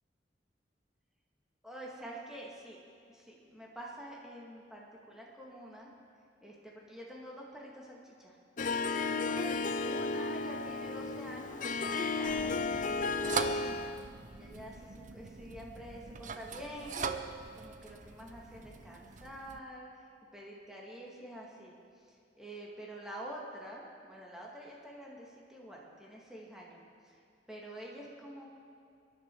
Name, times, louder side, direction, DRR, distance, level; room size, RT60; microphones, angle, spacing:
voice 1, 1.6-2.8 3.1-5.9 6.4-8.4 9.1-17.3 17.5-19.9 20.3-21.7 22.4-27.1 27.5-28.5, right 1 dB, 5° right, -4 dB, 2.3 m, -47 dB
Harp, 8.6-14.0, left 3 dB, 45° left, 0.6 m, -33 dB
sound 1, 12.3-19.6, right 5 dB, 45° right, 0.7 m, -41 dB
22.5 x 11.0 x 4.8 m, 2.4 s
head